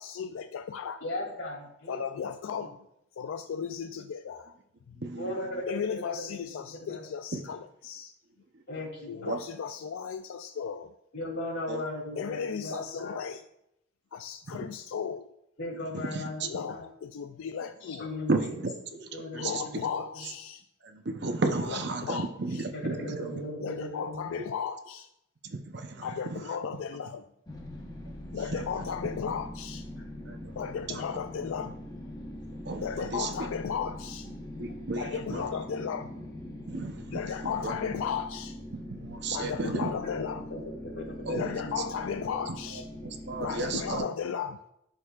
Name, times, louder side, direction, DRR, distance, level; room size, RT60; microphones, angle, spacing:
voice 1, 0.0-1.0 1.9-2.9 3.1-4.5 4.9-5.0 5.7-8.1 9.1-10.9 12.2-13.4 14.1-15.3 16.4-18.1 19.3-20.6 21.7-22.6 23.6-25.1 26.0-27.2 28.3-29.8 30.6-31.8 32.8-34.3 35.0-36.1 37.1-38.6 39.3-40.4 41.3-42.8 43.4-44.6, left 7 dB, 90° left, 9 dB, 0.4 m, -35 dB
voice 2, 1.0-2.0 5.1-7.1 8.7-9.4 11.1-13.2 15.6-16.9 17.8-18.3 19.1-20.3 22.7-24.3 40.0-42.1, left 1 dB, 70° left, -2 dB, 2.9 m, -38 dB
voice 3, 5.0-5.5 7.3-7.4 9.3-9.4 11.7-11.8 14.5-14.7 15.9-16.5 18.3-18.7 19.3-19.6 20.2-20.3 20.8-23.4 25.4-26.6 28.5-28.6 30.3-31.1 32.6-33.5 34.6-35.5 36.7-37.8 38.9-39.9 41.2-41.8 42.5-44.1, right 3 dB, 55° right, 6 dB, 0.8 m, -34 dB
sound 1, 27.5-44.0, left 1 dB, 20° left, 1.0 m, -42 dB
11.0 x 6.4 x 2.4 m, 0.80 s
head